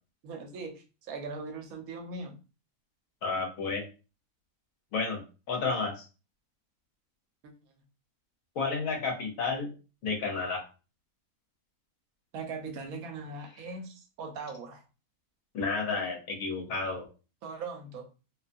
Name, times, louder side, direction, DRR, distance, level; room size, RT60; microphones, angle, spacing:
voice 1, 0.2-2.4 12.3-14.8 17.4-18.0, right 4 dB, 75° right, 4 dB, 1.0 m, -40 dB
voice 2, 3.2-3.8 4.9-5.2 5.5-6.1 8.6-9.7 10.0-10.6 15.5-17.1, left 4 dB, 70° left, 2 dB, 1.1 m, -31 dB
2.6 x 2.2 x 2.5 m, 0.33 s
omnidirectional pair, 1.5 m